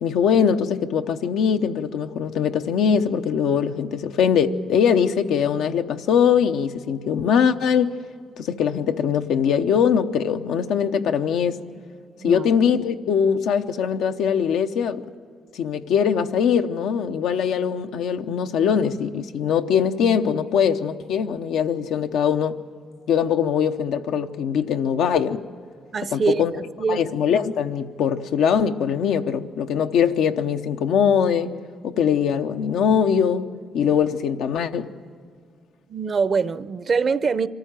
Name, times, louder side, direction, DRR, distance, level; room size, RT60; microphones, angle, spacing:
voice 1, 0.0-7.9 8.4-11.6 12.2-15.1 15.5-22.6 23.1-25.4 26.1-26.6 26.9-31.5 31.8-33.5 33.7-34.9, left 7 dB, 85° left, 0.9 m, -21 dB
voice 2, 25.9-27.0 35.9-37.5, right 5 dB, 45° right, 0.7 m, -24 dB
25.0 x 14.0 x 9.0 m
cardioid pair, 90°, 0 cm